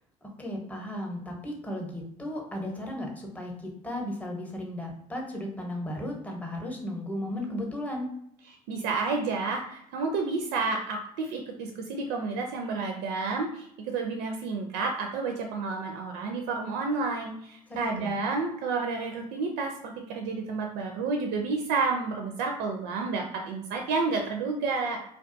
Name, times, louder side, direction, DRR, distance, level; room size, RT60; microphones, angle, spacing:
voice 1, 0.2-8.1 17.7-18.1, left 1 dB, 10° left, 0 dB, 0.8 m, -35 dB
voice 2, 8.7-25.0, right 4 dB, 70° right, 3 dB, 0.4 m, -30 dB
2.3 x 2.3 x 2.6 m, 0.75 s
hypercardioid pair, 65°, 18 cm